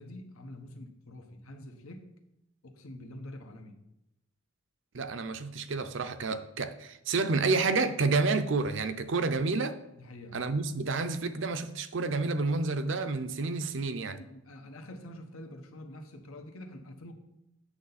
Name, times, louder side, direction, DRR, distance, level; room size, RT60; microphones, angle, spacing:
voice 1, 0.0-2.1 2.6-3.8 9.9-10.4 14.1-17.1, left 1 dB, 90° left, 1.2 m, -46 dB
voice 2, 4.9-9.8 10.3-14.2, right 3 dB, 60° right, 0.5 m, -29 dB
8.7 x 6.6 x 4.1 m
head